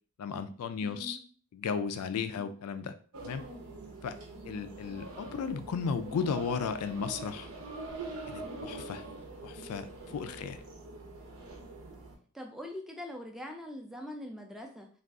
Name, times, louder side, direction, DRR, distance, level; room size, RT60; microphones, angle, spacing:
voice 1, 0.2-1.2 1.5-3.0 3.2-3.4 4.0-4.2 4.4-7.5 8.3-9.0 9.4-10.6, left 6 dB, 90° left, 10 dB, 0.3 m, -35 dB
voice 2, 0.8-1.2 2.1-2.4 12.3-14.9, left 1 dB, ahead, 2 dB, 0.3 m, -43 dB
sound 1, 3.1-12.2, right 2 dB, 75° right, 0.7 m, -44 dB
2.4 x 2.3 x 3.5 m, 0.44 s
head